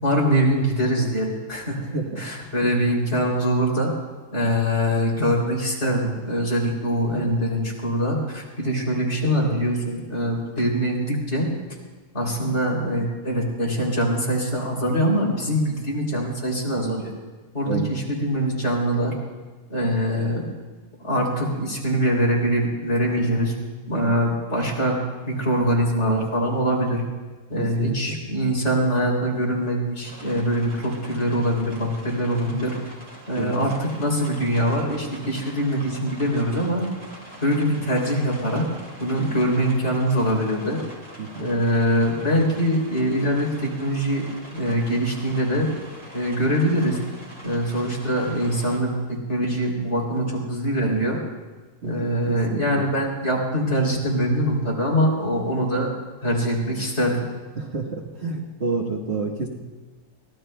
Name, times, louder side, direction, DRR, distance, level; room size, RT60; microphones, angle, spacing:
voice 1, 0.0-1.8 2.2-3.9 4.3-11.5 12.1-17.1 17.5-19.1 19.7-20.5 21.0-23.5 23.9-27.0 27.5-32.7 33.3-36.8 37.4-38.7 39.0-40.8 41.4-44.2 44.5-45.7 46.1-47.0 47.4-51.2 51.8-55.9 56.2-57.2, equal, 45° left, -3 dB, 3.4 m, -23 dB
voice 2, 1.8-2.2 2.6-2.7 17.7-17.9 27.6-28.2 33.3-33.5 41.2-41.5 51.8-52.8 57.6-59.5, right 4 dB, 45° right, -1 dB, 1.4 m, -29 dB
sound 1, 30.0-48.8, right 1 dB, 15° right, 2.6 m, -43 dB
23.0 x 17.0 x 2.2 m, 1.3 s
omnidirectional pair, 1.7 m